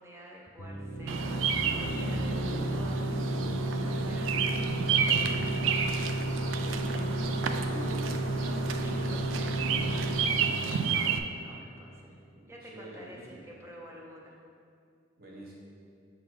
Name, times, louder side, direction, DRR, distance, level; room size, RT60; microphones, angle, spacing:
voice 1, 0.0-1.4 1.7-3.3 3.8-4.7 5.0-7.4 8.4-12.2 12.4-14.4, equal, 15° right, -2 dB, 0.5 m, -50 dB
sound 1, 0.6-12.0, right 1 dB, 85° left, 0.6 m, -33 dB
Bird vocalization bird call bird song, 1.1-11.2, right 6 dB, 75° right, 0.3 m, -31 dB
voice 2, 7.4-8.2 12.3-13.5 15.2-15.5, right 1 dB, 50° right, -3 dB, 1.1 m, -46 dB
6.3 x 3.7 x 4.5 m, 2.3 s
head